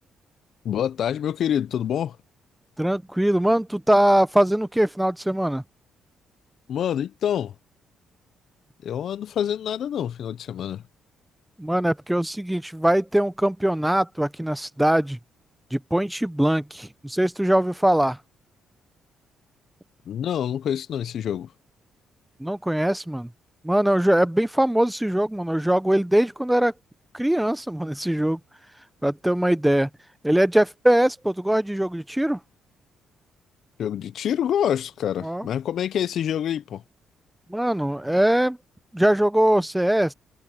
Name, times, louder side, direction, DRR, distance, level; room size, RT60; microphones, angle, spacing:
voice 1, 0.6-2.2 6.7-7.5 8.8-10.8 20.1-21.5 33.8-36.8, left 9 dB, 65° left, 0.6 m, -26 dB
voice 2, 2.8-5.6 11.6-15.2 15.7-18.2 22.4-23.3 23.6-26.7 27.1-28.4 29.0-29.9 30.2-32.4 35.2-35.5 37.5-38.6 38.9-40.1, right 1 dB, 5° right, 0.7 m, -22 dB
cardioid pair, 90°, 0 cm